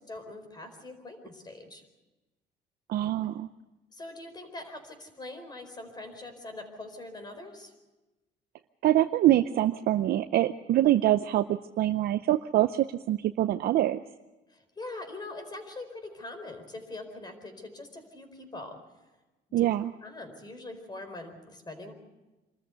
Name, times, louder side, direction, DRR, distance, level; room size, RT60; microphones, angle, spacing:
voice 1, 0.1-1.8 3.9-7.7 14.5-18.8 19.5-19.7 20.0-21.9, left 2 dB, 25° left, 7 dB, 4.4 m, -43 dB
voice 2, 2.9-3.5 8.8-14.0 19.5-19.9, right 13 dB, 65° right, 9 dB, 0.6 m, -25 dB
25.5 x 13.5 x 8.1 m, 1.1 s
cardioid pair, 110°, 17 cm